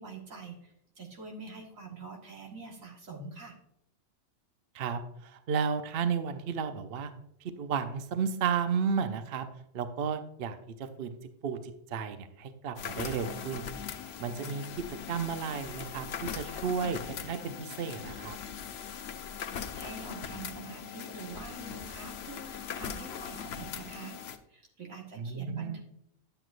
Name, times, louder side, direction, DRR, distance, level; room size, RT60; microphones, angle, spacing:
voice 1, 0.0-3.6 19.5-24.2 24.5-25.8, right 4 dB, 85° right, 0 dB, 2.0 m, -45 dB
voice 2, 4.7-7.1 7.6-9.4 9.7-11.1 11.4-11.6 11.9-13.7 13.9-18.4 25.2-25.8, right 6 dB, 55° right, 9 dB, 0.8 m, -33 dB
sound 1, 12.8-24.4, left 8 dB, 60° left, 0.8 m, -40 dB
11.0 x 7.9 x 2.5 m, 0.76 s
omnidirectional pair, 1.4 m